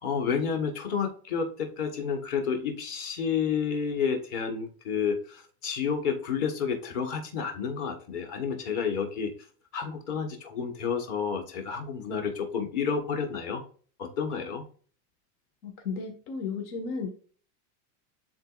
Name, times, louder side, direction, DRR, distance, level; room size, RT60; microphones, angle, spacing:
voice 1, 0.0-9.3 9.7-13.6 14.0-14.6, left 6 dB, 45° left, 5 dB, 1.4 m, -30 dB
voice 2, 15.6-17.1, left 5 dB, 85° left, 4 dB, 1.7 m, -34 dB
10.5 x 3.9 x 2.5 m, 0.42 s
supercardioid pair, 160°, 45 cm